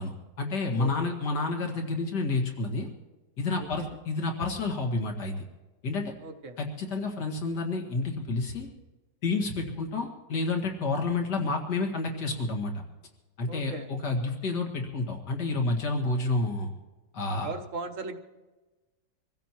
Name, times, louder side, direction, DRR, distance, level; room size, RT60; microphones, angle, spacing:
voice 1, 0.0-2.9 3.4-5.4 5.8-6.1 6.6-8.7 9.2-12.8 13.4-16.7 17.1-17.5, left 3 dB, 70° left, 2 dB, 2.6 m, -29 dB
voice 2, 0.8-1.1 3.6-4.0 6.2-6.6 13.5-13.9 17.4-18.2, right 3 dB, 50° right, 6 dB, 1.3 m, -38 dB
25.5 x 16.0 x 3.0 m, 1.2 s
omnidirectional pair, 1.9 m